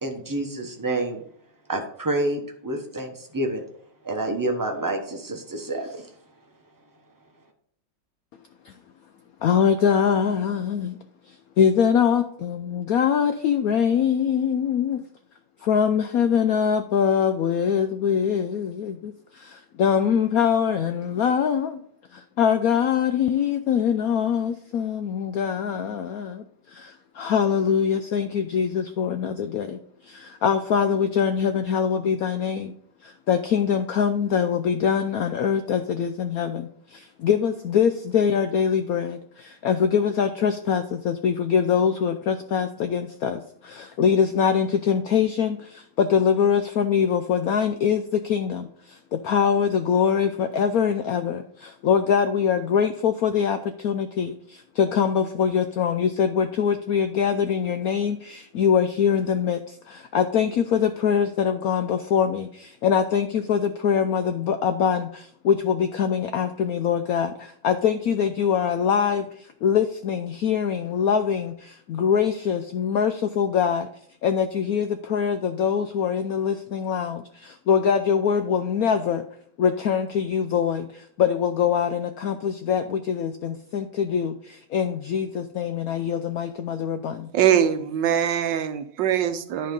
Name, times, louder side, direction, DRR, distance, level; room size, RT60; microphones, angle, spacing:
voice 1, 0.0-1.2 1.7-3.6 4.0-6.1, right 2 dB, 15° right, 3 dB, 0.7 m, -28 dB
voice 2, 9.4-11.0 11.3-15.0 15.6-21.8 22.1-32.7 33.0-73.9 74.2-79.2 79.6-87.3, left 7 dB, 75° left, 8 dB, 0.8 m, -23 dB
voice 3, 87.3-89.7, right 9 dB, 75° right, 9 dB, 1.4 m, -22 dB
10.5 x 4.4 x 5.3 m, 0.63 s
omnidirectional pair, 2.1 m